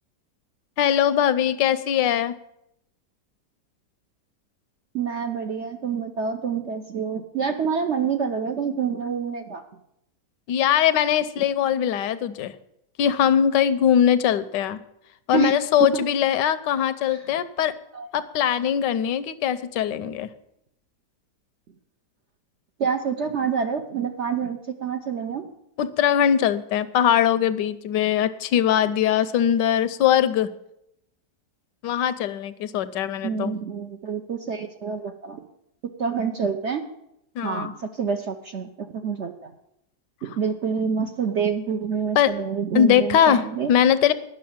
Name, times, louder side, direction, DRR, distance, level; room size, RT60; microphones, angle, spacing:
voice 1, 0.8-2.3 10.5-12.5 13.0-14.8 15.3-17.7 18.1-20.3 25.8-30.5 31.8-33.5 37.3-37.7 42.1-42.3 42.7-44.1, left 9 dB, 85° left, 14 dB, 1.3 m, -21 dB
voice 2, 4.9-9.6 15.3-16.0 17.1-17.2 17.9-18.1 22.8-25.5 33.2-35.4 36.0-36.9 37.4-39.5 40.2-43.7, right 6 dB, 60° right, 5 dB, 0.8 m, -27 dB
10.5 x 6.3 x 8.7 m, 0.79 s
omnidirectional pair, 1.8 m